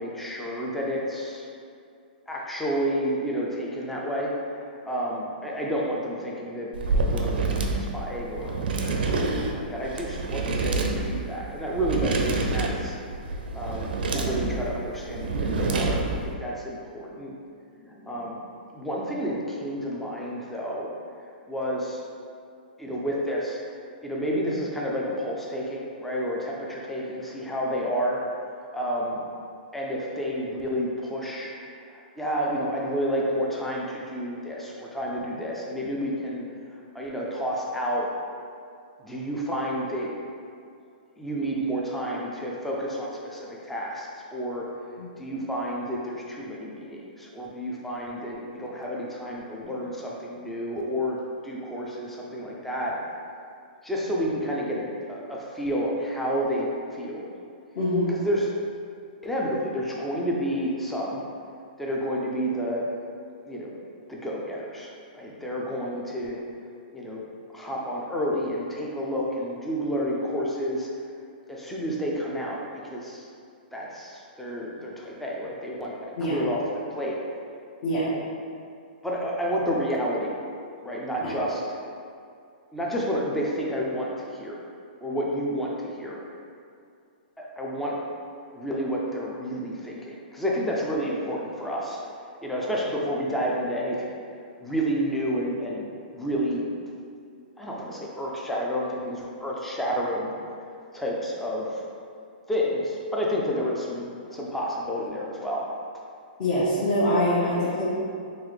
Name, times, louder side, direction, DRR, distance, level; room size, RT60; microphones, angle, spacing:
voice 1, 0.0-1.5 2.3-4.3 4.9-7.4 7.8-12.9 13.5-17.3 17.8-18.4 18.7-20.9 21.5-22.0 22.8-23.6 24.0-28.2 28.5-29.2 29.7-31.5 31.9-38.1 39.0-40.1 41.2-44.7 45.2-51.2 51.4-53.0 53.8-54.8 55.1-57.2 58.1-58.5 59.2-61.2 61.8-62.8 63.4-63.7 64.1-64.9 65.1-66.4 66.9-67.2 67.5-70.9 71.5-72.6 72.9-73.3 73.7-75.9 76.3-76.6 76.9-77.2 79.0-80.3 80.8-81.6 82.7-84.6 85.0-86.2 87.4-88.0 88.5-92.0 92.4-94.2 94.6-95.9 96.1-96.6 97.6-100.3 100.9-101.8 102.5-105.7, equal, 5° left, -3 dB, 0.4 m, -30 dB
sound 1, 6.7-16.3, right 3 dB, 75° right, 0.5 m, -27 dB
voice 2, 57.7-58.1 76.2-76.4 77.8-78.1 81.2-81.3 106.4-107.9, left 1 dB, 45° left, -10 dB, 1.0 m, -24 dB
3.9 x 2.9 x 3.1 m, 2.4 s
hypercardioid pair, 155°, 5 cm